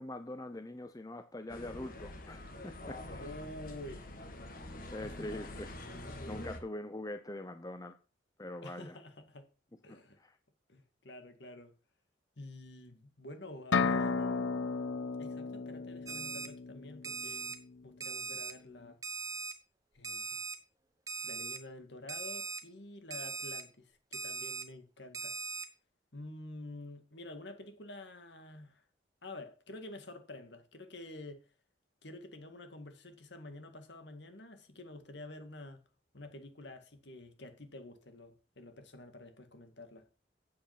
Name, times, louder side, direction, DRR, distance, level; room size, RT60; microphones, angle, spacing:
voice 1, 0.0-3.3 4.9-5.7 6.3-8.0 8.4-9.0 9.9-10.4, left 1 dB, 20° left, 0.7 m, -43 dB
sound 1, 1.5-6.6, left 1 dB, 45° left, 1.7 m, -45 dB
voice 2, 3.2-4.0 5.0-5.6 8.6-9.5 9.8-10.2 10.7-11.7 12.4-14.7 15.2-17.5 17.8-19.0 19.9-20.4 21.2-25.4 26.1-28.8 29.2-31.4 32.0-35.8 36.1-40.1, left 1 dB, 65° left, 1.9 m, -49 dB
sound 2, 13.7-17.5, left 4 dB, 90° left, 0.8 m, -34 dB
Alarm, 16.1-16.5 17.0-17.5 18.0-18.5 19.0-19.5 20.0-20.5 21.1-21.6 22.1-22.6 23.1-23.6 24.1-24.6 25.1-25.6, right 4 dB, 20° right, 0.9 m, -40 dB
8.6 x 8.0 x 5.9 m
head